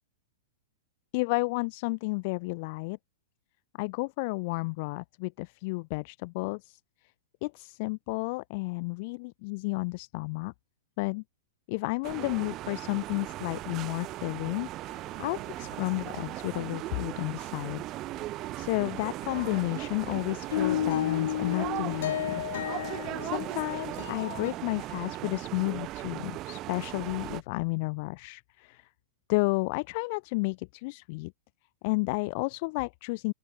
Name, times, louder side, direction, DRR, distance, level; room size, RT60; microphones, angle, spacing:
voice 1, 1.1-3.0 3.8-6.8 7.4-10.5 11.0-11.2 11.7-17.9 18.6-22.4 22.7-22.8 23.2-28.9 29.3-31.3 31.8-33.3, left 27 dB, 35° left, 1.3 m, -32 dB
sound 1, 12.0-27.4, right 16 dB, 25° right, 1.4 m, -38 dB
sound 2, 15.7-16.1 17.0-17.4 18.2-18.3 18.8-18.9 19.3-19.9 20.2-24.5, left 11 dB, 70° left, 0.7 m, -33 dB
open air
supercardioid pair, 175°, 0 cm